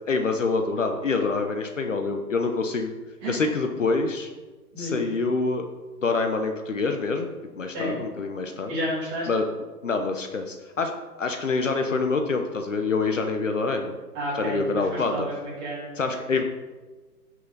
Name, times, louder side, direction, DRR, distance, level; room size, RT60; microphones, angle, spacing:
voice 1, 0.1-2.9 3.3-4.3 4.8-5.7 6.0-7.3 7.6-8.8 9.3-9.5 9.8-10.9 11.2-13.9 14.3-15.2 16.0-16.4, left 4 dB, 50° left, 5 dB, 1.0 m, -26 dB
voice 2, 8.7-9.3 14.1-15.8, equal, 15° right, -8 dB, 3.0 m, -31 dB
15.5 x 6.3 x 4.0 m, 1.3 s
hypercardioid pair, 170°, 48 cm